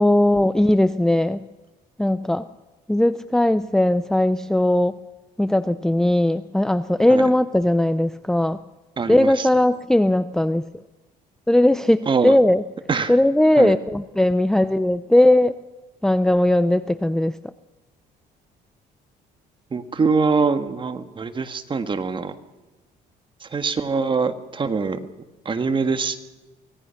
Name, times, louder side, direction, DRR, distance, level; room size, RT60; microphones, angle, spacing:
voice 1, 0.0-1.4 2.0-2.5 2.9-5.0 5.4-8.6 9.1-10.6 11.5-12.6 13.1-15.6 16.0-17.4, left 1 dB, 5° left, 13 dB, 0.6 m, -18 dB
voice 2, 9.0-9.5 12.1-12.4 12.9-13.1 13.6-13.7 19.7-22.3 23.4-25.0 25.4-26.3, right 4 dB, 30° right, 9 dB, 1.6 m, -23 dB
24.5 x 18.0 x 5.9 m, 1.1 s
cardioid pair, 110°, 17 cm